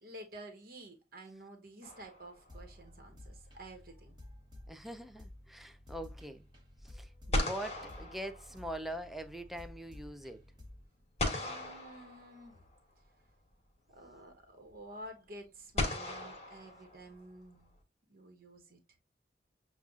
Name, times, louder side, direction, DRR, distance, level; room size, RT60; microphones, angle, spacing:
voice 1, 0.0-4.2 7.3-7.5 11.3-12.6 13.9-17.7 18.1-18.8, right 1 dB, 55° right, 1.1 m, -51 dB
sound 1, 1.8-2.7 6.8-6.9 7.3-9.0 11.2-12.8 14.1-14.2 15.8-17.4, left 1 dB, 40° left, 1.2 m, -37 dB
sound 2, 2.5-10.8, left 1 dB, 25° right, 1.1 m, -53 dB
voice 2, 4.7-6.5 6.8-10.4, right 1 dB, ahead, 0.4 m, -43 dB
7.0 x 2.4 x 2.4 m
head